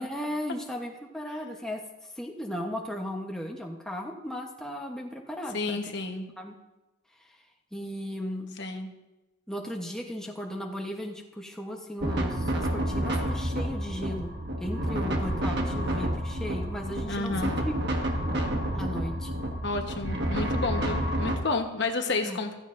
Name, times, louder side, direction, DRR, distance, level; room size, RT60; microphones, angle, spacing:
voice 1, 0.0-5.8 6.4-6.6 7.2-7.4 7.7-8.6 9.5-17.8 18.7-19.3 22.2-22.4, equal, 5° left, 0 dB, 1.0 m, -36 dB
voice 2, 5.5-6.3 8.6-8.9 17.1-17.5 19.6-22.6, left 3 dB, 55° left, 4 dB, 1.2 m, -30 dB
sound 1, 12.0-21.4, equal, 50° right, 1.5 m, -29 dB
15.0 x 14.0 x 2.6 m, 1.1 s
head